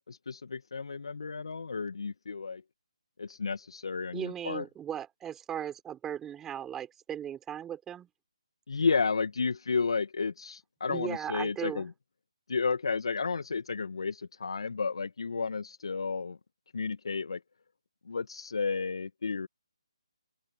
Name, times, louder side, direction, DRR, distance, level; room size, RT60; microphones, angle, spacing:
voice 1, 0.1-2.6 3.2-4.6 8.7-11.9 12.5-16.4 16.7-17.4 18.1-19.5, left 4 dB, 65° left, 2.1 m, -32 dB
voice 2, 4.1-8.1 10.9-11.9, right 10 dB, 10° right, 6.7 m, -37 dB
open air
figure-of-eight pair, 150°, 3 cm